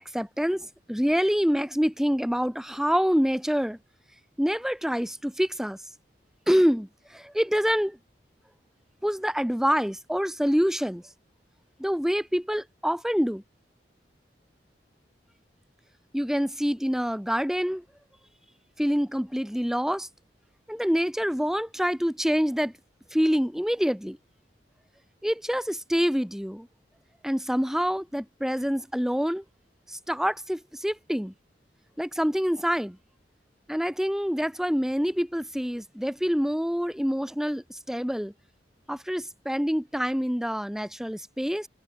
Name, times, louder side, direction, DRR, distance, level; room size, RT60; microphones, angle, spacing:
voice 1, 0.0-3.8 4.4-5.8 6.5-8.0 9.0-11.0 11.8-13.4 16.1-17.8 18.8-20.1 20.7-22.7 23.1-24.2 25.2-26.7 27.2-29.4 29.9-31.3 32.0-33.0 33.7-38.3 38.9-41.7, equal, 5° right, 1.1 m, -26 dB
head